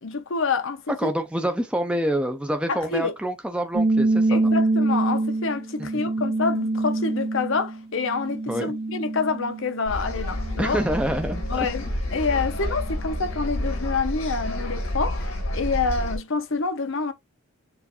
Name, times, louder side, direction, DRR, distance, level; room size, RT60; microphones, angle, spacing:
voice 1, 0.0-1.1 2.7-3.1 4.3-10.8 11.5-11.8 12.1-17.1, left 4 dB, 65° left, 0.9 m, -27 dB
voice 2, 1.0-4.4 8.5-8.7 10.6-11.4, right 1 dB, 5° right, 0.5 m, -26 dB
sound 1, 3.7-9.8 10.2-11.6, right 2 dB, 45° right, 0.7 m, -25 dB
sound 2, 9.9-16.2, left 1 dB, 80° left, 1.9 m, -29 dB
7.0 x 2.6 x 2.6 m
head